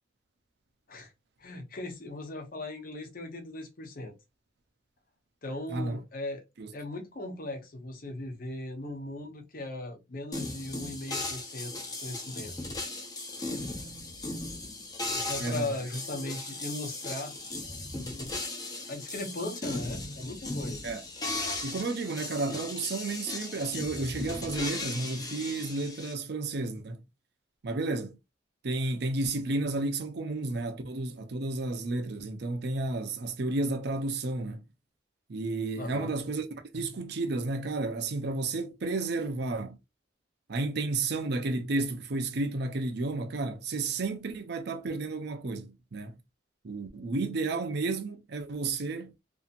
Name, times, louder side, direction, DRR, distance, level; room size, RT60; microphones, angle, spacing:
voice 1, 1.4-4.1 5.4-6.5 6.7-11.7 12.0-12.5 15.1-17.3 18.0-18.3 18.9-20.9 35.7-36.1, left 2 dB, 50° left, 0.8 m, -38 dB
sound 1, 10.3-26.1, left 2 dB, 20° left, 0.7 m, -37 dB
voice 2, 15.4-15.7 20.8-21.0 21.6-27.0 27.6-28.2 28.6-34.6 35.3-36.5 36.7-39.8 40.5-46.2 46.6-49.1, right 3 dB, 60° right, 0.6 m, -32 dB
2.7 x 2.7 x 2.5 m
head